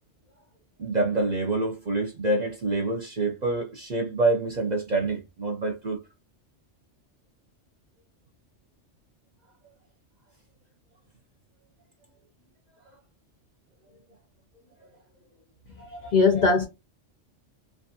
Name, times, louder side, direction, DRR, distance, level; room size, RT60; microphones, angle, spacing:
voice 1, 0.8-6.0, right 2 dB, 50° right, 0.6 m, -26 dB
voice 2, 15.8-16.6, left 4 dB, 55° left, 0.5 m, -21 dB
2.4 x 2.3 x 2.6 m
omnidirectional pair, 1.2 m